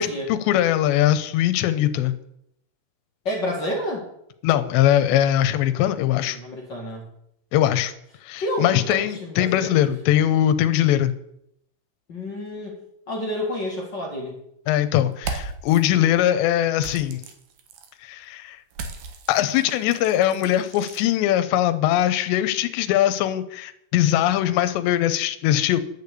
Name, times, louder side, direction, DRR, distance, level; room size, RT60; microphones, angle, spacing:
voice 1, 0.0-2.1 4.4-6.4 7.5-7.9 8.2-11.1 14.7-17.2 18.0-18.6 19.3-25.8, left 12 dB, 85° left, 10 dB, 3.0 m, -21 dB
voice 2, 3.2-4.0 6.0-7.1 8.4-9.8 12.1-14.4, left 1 dB, 50° left, -1 dB, 1.3 m, -30 dB
sound 1, 15.1-15.8 16.8-17.9 18.7-21.0, right 4 dB, 65° right, 2.5 m, -36 dB
11.0 x 6.8 x 8.3 m, 0.76 s
omnidirectional pair, 5.1 m